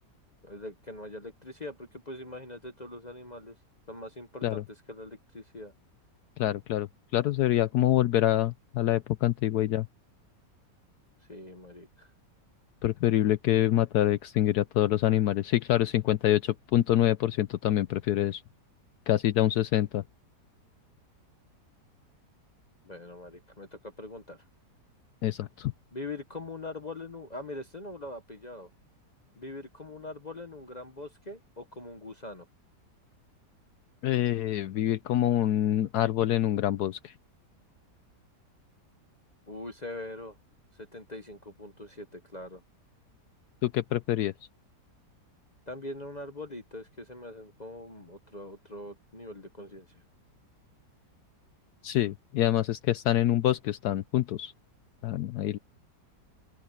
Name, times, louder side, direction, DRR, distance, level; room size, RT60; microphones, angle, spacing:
voice 1, 0.4-3.6 3.9-5.7 11.3-12.1 22.8-24.4 25.9-28.7 29.4-32.5 39.5-40.4 40.7-42.6 45.7-50.0, left 2 dB, 30° left, 1.0 m, -42 dB
voice 2, 6.4-6.9 7.1-9.9 12.8-18.4 19.1-20.0 25.2-25.7 34.0-37.1 43.6-44.3 51.8-54.5 55.0-55.6, left 13 dB, 75° left, 1.1 m, -26 dB
open air
omnidirectional pair, 1.8 m